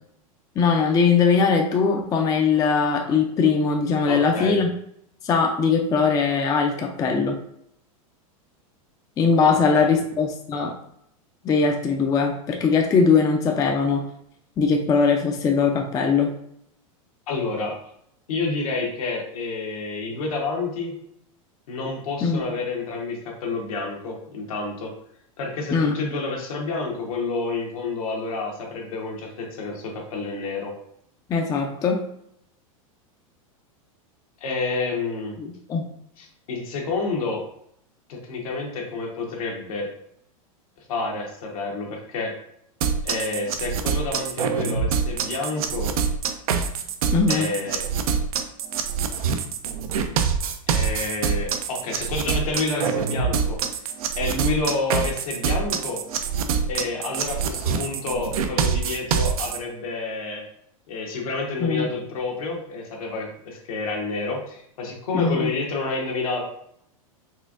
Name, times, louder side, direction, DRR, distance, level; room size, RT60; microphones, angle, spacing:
voice 1, 0.6-4.7 5.2-7.4 9.2-10.7 11.4-14.0 14.6-16.3 22.2-22.4 25.7-25.9 31.3-32.0 35.4-35.9 47.1-47.5 61.6-61.9 65.1-65.5, left 5 dB, 20° left, 3 dB, 0.4 m, -21 dB
voice 2, 4.1-4.6 9.7-10.0 17.3-17.8 18.3-20.9 21.7-24.9 25.4-30.7 34.4-35.4 36.2-37.4 38.1-39.9 40.9-42.3 43.0-45.9 47.3-47.8 50.7-53.6 54.2-56.0 56.7-60.5 60.9-66.4, left 3 dB, 80° left, 0 dB, 1.1 m, -29 dB
sound 1, 42.8-59.6, right 6 dB, 85° right, 0.5 m, -25 dB
4.3 x 2.5 x 2.4 m, 0.70 s
hypercardioid pair, 125°, 18 cm